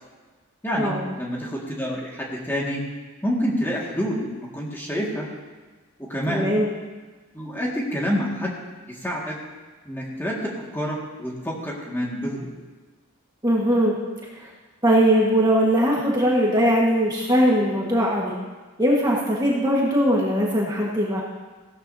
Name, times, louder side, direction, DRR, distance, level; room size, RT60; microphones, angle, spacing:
voice 1, 0.6-2.8 3.2-4.2 4.5-5.2 6.0-6.5 7.3-8.5 8.9-9.4 9.9-12.5, equal, 10° left, -3 dB, 2.0 m, -27 dB
voice 2, 6.3-6.7 13.4-13.9 14.8-18.3 18.8-21.2, equal, 20° right, -4 dB, 1.6 m, -20 dB
16.5 x 13.0 x 2.8 m, 1.3 s
head